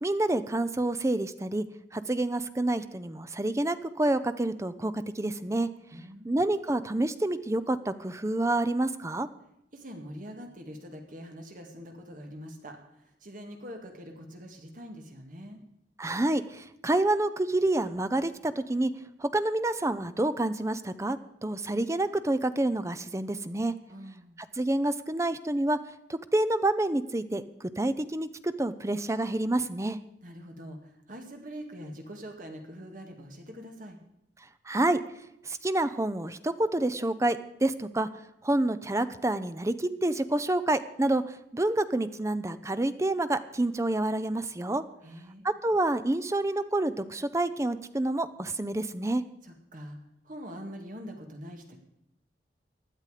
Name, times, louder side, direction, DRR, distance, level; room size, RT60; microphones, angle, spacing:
voice 1, 0.0-1.6 1.9-5.7 6.2-9.3 16.0-18.9 19.2-23.7 24.5-25.8 26.3-30.0 34.7-35.0 35.5-38.1 38.4-44.8 45.4-49.2, right 1 dB, 15° right, 12 dB, 0.6 m, -28 dB
voice 2, 5.9-6.3 9.7-15.6 23.9-24.4 30.2-34.0 45.0-45.5 49.4-50.0 50.2-51.8, equal, 45° right, 4 dB, 2.0 m, -44 dB
16.0 x 11.0 x 5.0 m, 0.80 s
head